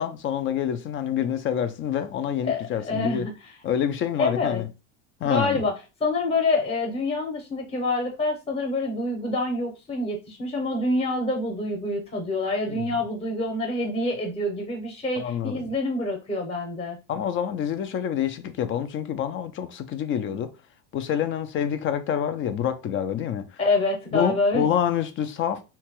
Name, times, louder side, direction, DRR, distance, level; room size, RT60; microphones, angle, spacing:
voice 1, 0.0-3.3 3.6-4.7 5.2-5.6 12.7-12.9 15.2-15.6 17.1-20.5 20.9-23.5 24.1-25.6, left 9 dB, 35° left, 0.4 m, -27 dB
voice 2, 2.4-3.3 4.2-4.6 5.2-5.7 6.0-17.0 23.6-24.7, left 2 dB, 15° left, 0.8 m, -26 dB
2.9 x 2.3 x 3.0 m
supercardioid pair, 110°, 39 cm